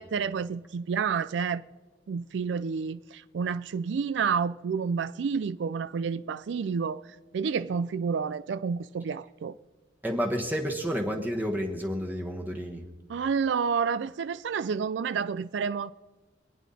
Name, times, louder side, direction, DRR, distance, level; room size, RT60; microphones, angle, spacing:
voice 1, 0.0-1.6 2.1-9.5 13.1-15.9, right 6 dB, 75° right, 0.4 m, -29 dB
voice 2, 10.0-12.8, equal, 10° right, 1.1 m, -30 dB
26.0 x 9.2 x 4.2 m
head